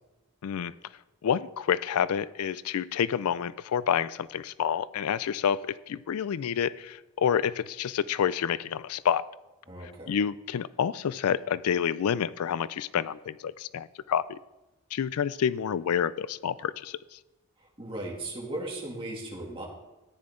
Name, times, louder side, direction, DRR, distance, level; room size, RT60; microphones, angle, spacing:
voice 1, 0.4-0.7 1.2-9.2 10.1-14.4 14.9-17.2, left 8 dB, 85° left, 18 dB, 0.4 m, -28 dB
voice 2, 9.7-10.1 17.8-19.7, right 1 dB, 25° right, -3 dB, 2.6 m, -37 dB
14.0 x 9.7 x 3.8 m, 1.0 s
head